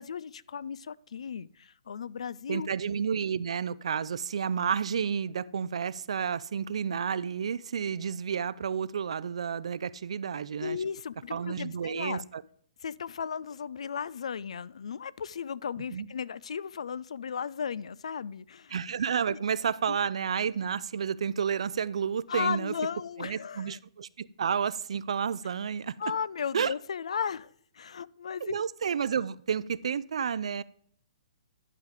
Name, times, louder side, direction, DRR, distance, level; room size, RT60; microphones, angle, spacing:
voice 1, 0.0-2.7 10.6-12.2 12.8-18.7 19.3-19.4 19.9-20.0 22.3-23.8 26.0-28.6, left 7 dB, 80° left, 21 dB, 0.4 m, -35 dB
voice 2, 2.5-10.8 11.3-12.4 15.9-16.1 18.7-22.7 23.2-26.0 26.5-26.7 28.4-30.6, right 7 dB, 70° right, 19 dB, 0.4 m, -31 dB
10.5 x 4.9 x 4.9 m, 0.62 s
hypercardioid pair, 155°, 3 cm